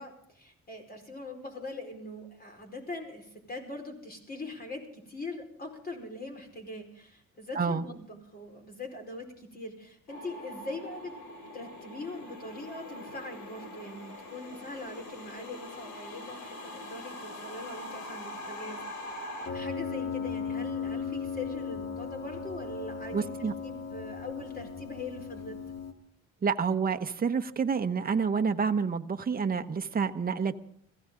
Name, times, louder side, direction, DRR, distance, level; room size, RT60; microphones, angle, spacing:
voice 1, 0.0-11.2 11.5-23.3 23.6-25.6, left 2 dB, 30° left, 3 dB, 4.8 m, -42 dB
sound 1, 10.1-19.5, left 1 dB, 75° left, 3.3 m, -43 dB
Piano, 19.4-25.9, left 6 dB, 55° left, 2.0 m, -36 dB
voice 2, 23.1-23.5 26.4-30.5, right 5 dB, 30° right, 7 dB, 1.0 m, -28 dB
22.0 x 15.5 x 3.8 m, 0.66 s
cardioid pair, 90°, 30 cm